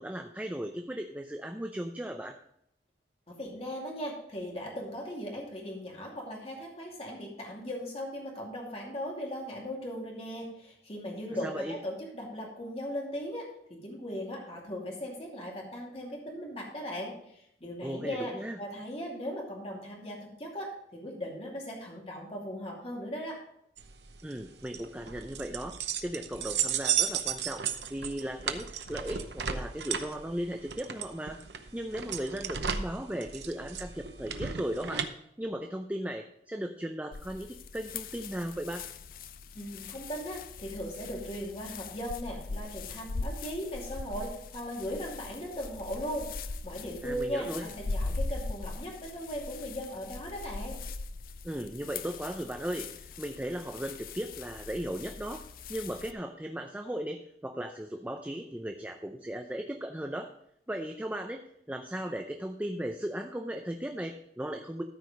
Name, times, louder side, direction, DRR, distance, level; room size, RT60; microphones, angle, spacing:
voice 1, 0.0-2.4 11.4-11.8 17.8-18.6 24.2-27.6 27.9-31.4 31.7-35.1 35.4-38.9 47.0-47.7 51.4-55.4 55.7-60.3 60.7-61.4 61.7-64.8, right 1 dB, 10° right, 4 dB, 0.5 m, -37 dB
voice 2, 3.3-23.4 39.5-50.8, equal, 35° left, -2 dB, 2.5 m, -38 dB
sound 1, 23.8-35.1, right 8 dB, 80° right, 0.8 m, -34 dB
sound 2, 37.1-56.1, left 3 dB, 50° left, 0.5 m, -40 dB
13.5 x 4.8 x 5.2 m, 0.74 s
head